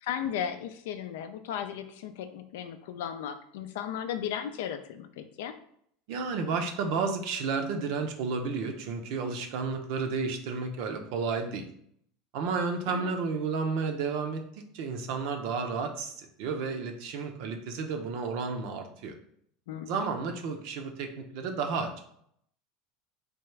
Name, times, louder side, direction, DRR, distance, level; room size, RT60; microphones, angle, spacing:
voice 1, 0.0-5.5 12.8-13.1 19.7-20.0, left 9 dB, 80° left, 9 dB, 0.4 m, -36 dB
voice 2, 6.1-11.7 12.3-14.4 14.7-19.1 19.9-22.0, right 4 dB, 65° right, 5 dB, 0.6 m, -32 dB
3.4 x 2.4 x 3.1 m, 0.68 s
supercardioid pair, 105°, 0 cm